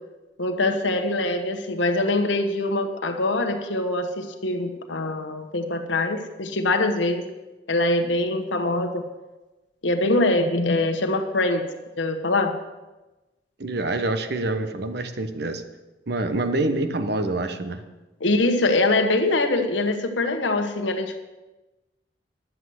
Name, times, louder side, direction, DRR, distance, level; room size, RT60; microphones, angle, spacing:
voice 1, 0.4-7.2 7.7-9.0 9.8-11.6 12.0-12.6 18.2-21.2, left 2 dB, 80° left, 4 dB, 1.3 m, -23 dB
voice 2, 13.6-15.6 16.1-17.8, right 2 dB, 60° right, 9 dB, 1.0 m, -26 dB
12.0 x 8.0 x 7.8 m, 1.1 s
head